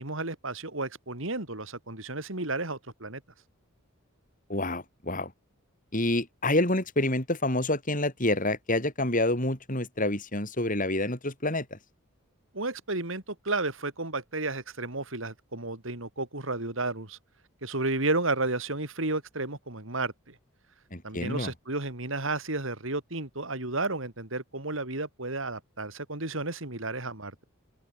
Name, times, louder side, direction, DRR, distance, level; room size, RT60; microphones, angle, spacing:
voice 1, 0.0-3.2 12.5-17.2 17.6-20.3 21.0-27.4, right 2 dB, 65° right, 3.7 m, -32 dB
voice 2, 4.5-5.3 5.9-11.8 20.9-21.5, left 1 dB, 40° left, 7.5 m, -28 dB
head